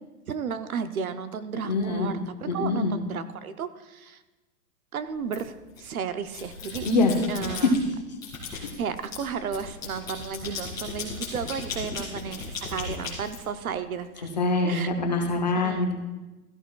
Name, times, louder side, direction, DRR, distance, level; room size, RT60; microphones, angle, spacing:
voice 1, 0.3-4.2 4.9-6.9 7.3-7.7 8.8-14.3 14.6-14.9 15.6-15.8, right 6 dB, 60° right, 11 dB, 0.7 m, -33 dB
voice 2, 1.6-2.1 2.5-2.9 6.8-7.1 7.5-7.7 14.4-15.9, left 3 dB, 25° left, 2 dB, 0.7 m, -24 dB
sound 1, 5.3-5.9 6.2-7.8 8.2-14.0, left 4 dB, 10° left, 2.1 m, -37 dB
16.5 x 14.0 x 2.3 m, 1.1 s
hypercardioid pair, 180°, 49 cm